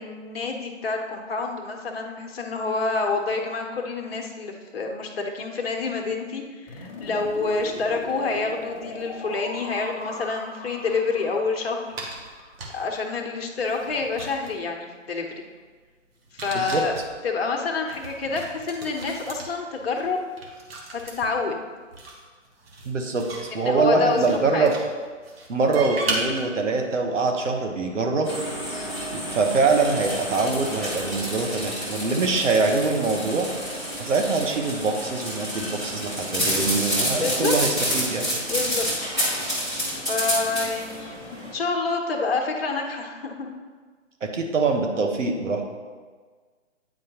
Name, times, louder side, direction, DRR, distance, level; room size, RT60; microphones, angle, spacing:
voice 1, 0.0-11.9 12.7-15.3 16.3-16.9 17.2-20.3 20.9-21.6 23.5-24.2 24.4-24.7 28.7-29.0 37.1-37.6 38.4-38.9 40.1-43.5, left 4 dB, 50° left, 2 dB, 1.1 m, -28 dB
sound 1, 6.7-12.6, left 1 dB, 25° left, 0.9 m, -39 dB
sound 2, 11.9-13.0 13.6-14.7 16.2-17.1 17.9-21.1 21.9-24.4 24.7-26.5, right 2 dB, 50° right, 1.4 m, -35 dB
voice 2, 22.8-23.3 23.5-24.7 25.5-28.3 29.1-33.5 34.0-38.3 44.2-45.6, right 3 dB, 70° right, 3 dB, 1.2 m, -24 dB
sound 3, 28.2-41.5, equal, ahead, 0.3 m, -29 dB
9.2 x 4.6 x 2.9 m, 1.5 s
figure-of-eight pair, 140°, 38 cm